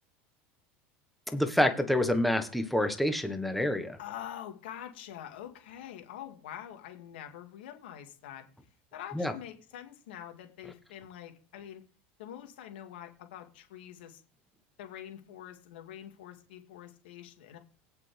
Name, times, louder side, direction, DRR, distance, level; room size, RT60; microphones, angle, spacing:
voice 1, 1.3-4.0 9.1-9.3, left 1 dB, ahead, 6 dB, 1.4 m, -27 dB
voice 2, 4.0-8.5 8.9-11.8 12.2-14.2 14.8-17.6, left 10 dB, 90° left, 5 dB, 2.3 m, -45 dB
17.0 x 6.0 x 3.5 m, 0.39 s
supercardioid pair, 120°, 5 cm